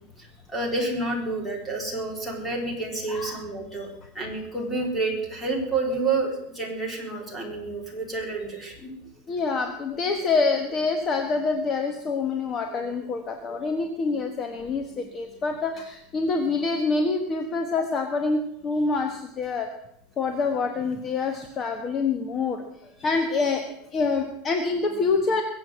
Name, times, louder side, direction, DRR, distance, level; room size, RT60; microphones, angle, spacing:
voice 1, 0.2-8.9, right 3 dB, ahead, -1 dB, 4.0 m, -29 dB
voice 2, 3.1-3.4 9.3-19.7 20.2-23.7 23.9-25.4, left 4 dB, 25° left, 5 dB, 1.3 m, -26 dB
22.0 x 8.0 x 7.9 m, 0.80 s
supercardioid pair, 170°, 0 cm